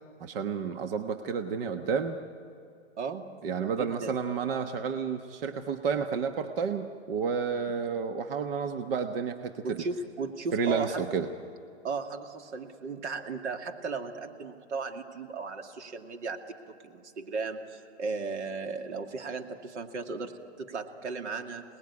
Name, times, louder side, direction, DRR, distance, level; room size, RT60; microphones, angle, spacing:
voice 1, 0.2-2.2 3.4-9.8 10.5-11.3, right 6 dB, 55° right, 7 dB, 1.3 m, -31 dB
voice 2, 3.0-3.3 3.8-4.2 9.6-11.2 11.8-16.4 16.7-20.3 20.6-21.6, right 4 dB, 80° right, 5 dB, 2.5 m, -36 dB
27.0 x 19.5 x 9.7 m, 2.5 s
hypercardioid pair, 155°, 34 cm